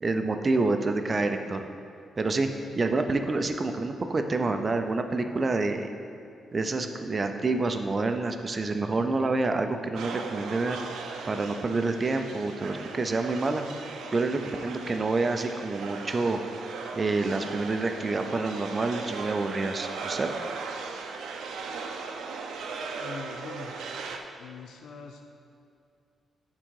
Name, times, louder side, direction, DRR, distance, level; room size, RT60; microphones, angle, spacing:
voice 1, 0.0-1.6 2.2-2.5 2.8-5.9 6.5-10.8 11.3-13.7 14.1-16.4 16.9-20.3, right 3 dB, 30° right, 6 dB, 0.5 m, -27 dB
sound 1, 9.9-24.2, right 4 dB, 85° right, 0.6 m, -38 dB
voice 2, 23.0-23.7 24.4-25.2, left 5 dB, 85° left, 3 dB, 0.5 m, -42 dB
9.9 x 3.7 x 4.7 m, 2.5 s
cardioid pair, 125°, 0 cm